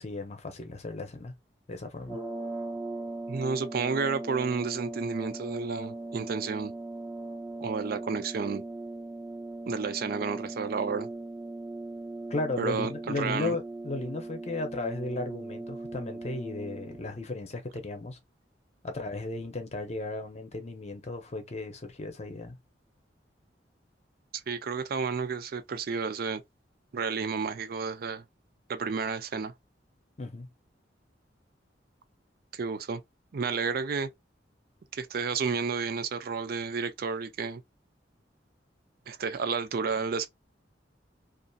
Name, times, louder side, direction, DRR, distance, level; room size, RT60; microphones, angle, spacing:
voice 1, 0.0-1.3 1.7-2.2 12.3-18.2 18.8-22.6 30.2-30.5, left 2 dB, 35° left, 0.7 m, -35 dB
sound 1, 2.0-17.1, right 2 dB, 10° right, 0.8 m, -39 dB
voice 2, 3.3-6.7 7.6-8.6 9.7-11.1 12.6-13.6 24.5-26.4 26.9-28.2 28.7-29.5 32.5-33.0 33.3-34.1 34.9-37.6 39.1-40.3, right 5 dB, 55° right, 0.4 m, -31 dB
2.6 x 2.5 x 2.3 m
head